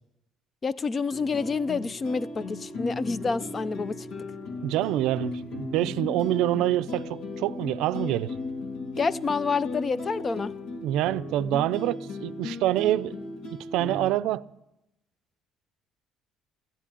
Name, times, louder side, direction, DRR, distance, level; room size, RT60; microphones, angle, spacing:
voice 1, 0.6-4.1 9.0-10.5, left 4 dB, 30° left, 0.5 m, -28 dB
sound 1, 1.1-14.1, left 2 dB, 85° left, 2.9 m, -36 dB
voice 2, 4.6-8.3 10.8-13.2 13.7-14.4, right 14 dB, 80° right, 0.5 m, -26 dB
13.5 x 10.0 x 10.0 m
cardioid pair, 135°, 0 cm